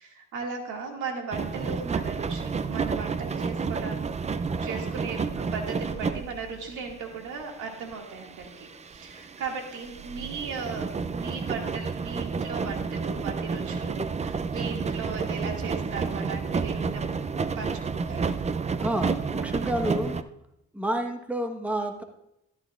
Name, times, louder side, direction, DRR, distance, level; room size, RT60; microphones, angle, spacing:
voice 1, 0.0-4.0 4.6-17.0 17.6-18.3, right 5 dB, 85° right, 1 dB, 2.1 m, -37 dB
sound 1, 1.3-20.2, right 5 dB, 25° right, 0.4 m, -31 dB
voice 2, 18.8-20.2 20.7-22.0, right 1 dB, 5° right, 4 dB, 1.2 m, -29 dB
13.5 x 12.5 x 2.4 m, 0.85 s
cardioid pair, 90°, 30 cm